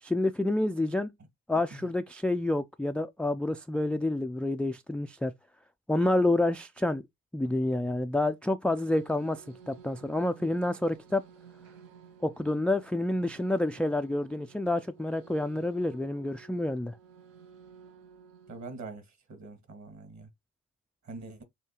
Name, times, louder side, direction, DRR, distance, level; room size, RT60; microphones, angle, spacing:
voice 1, 0.0-1.1 1.5-5.3 5.9-7.0 7.3-11.2 12.2-17.0, left 1 dB, 5° left, 0.3 m, -28 dB
sound 1, 8.8-18.7, right 6 dB, 80° right, 0.9 m, -54 dB
voice 2, 18.5-20.3 21.1-21.4, right 3 dB, 40° right, 1.9 m, -44 dB
6.7 x 2.7 x 2.9 m
hypercardioid pair, 45°, 42 cm